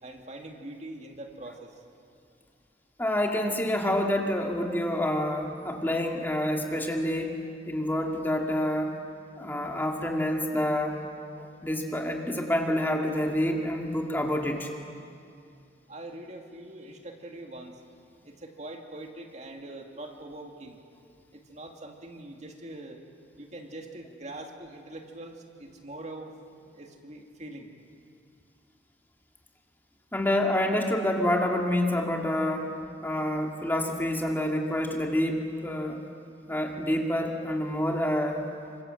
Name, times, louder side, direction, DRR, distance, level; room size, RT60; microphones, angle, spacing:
voice 1, 0.0-1.8 15.9-17.8 18.2-20.8 21.3-23.0 23.4-27.7, right 1 dB, 40° right, 2 dB, 2.4 m, -43 dB
voice 2, 3.0-7.4 7.7-8.9 9.4-11.0 11.4-14.7 30.1-32.7 33.0-36.0 36.5-38.4, left 1 dB, 10° left, 1 dB, 2.2 m, -27 dB
28.0 x 25.5 x 7.8 m, 2.4 s
head